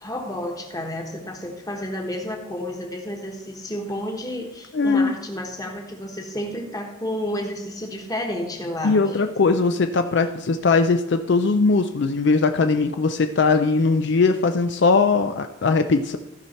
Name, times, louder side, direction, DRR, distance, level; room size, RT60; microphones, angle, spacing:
voice 1, 0.0-9.0, left 1 dB, 15° left, 2 dB, 1.3 m, -31 dB
voice 2, 4.7-5.1 8.8-16.2, left 4 dB, 55° left, 8 dB, 0.4 m, -20 dB
15.0 x 5.6 x 4.3 m, 0.97 s
head